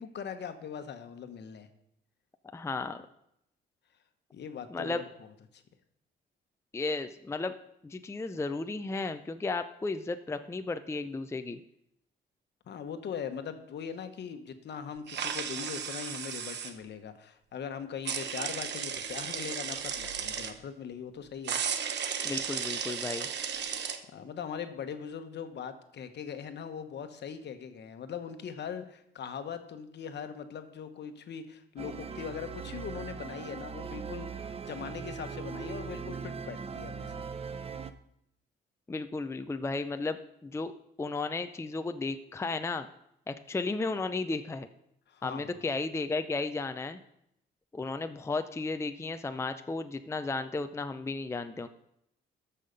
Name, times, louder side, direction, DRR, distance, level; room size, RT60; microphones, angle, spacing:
voice 1, 0.0-1.7 4.3-5.1 5.5-5.6 12.7-21.6 24.1-37.3 45.1-45.5, left 7 dB, 60° left, 9 dB, 1.1 m, -40 dB
voice 2, 2.5-3.1 4.7-5.0 6.7-7.6 7.8-11.6 22.2-23.3 38.9-40.7 41.0-42.9 43.3-44.7 45.2-47.0 47.7-51.7, left 3 dB, 15° left, 9 dB, 0.5 m, -34 dB
sound 1, 15.1-16.7 18.0-20.5 21.4-24.0, right 7 dB, 60° right, 1.0 m, -34 dB
sound 2, 31.8-37.9, right 6 dB, 30° right, 0.7 m, -40 dB
13.5 x 5.6 x 5.2 m, 0.78 s
cardioid pair, 90°, 20 cm